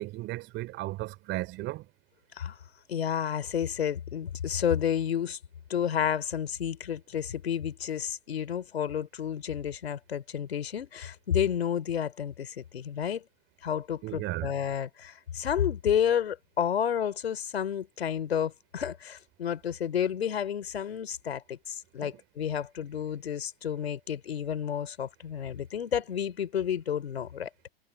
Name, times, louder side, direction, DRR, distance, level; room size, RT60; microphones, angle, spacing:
voice 1, 0.0-1.9 14.0-14.5 22.0-22.1, right 18 dB, 35° right, 4.3 m, -35 dB
voice 2, 2.9-5.4 5.7-13.2 13.6-27.5, left 9 dB, 80° left, 4.3 m, -31 dB
hypercardioid pair, 115°, 31 cm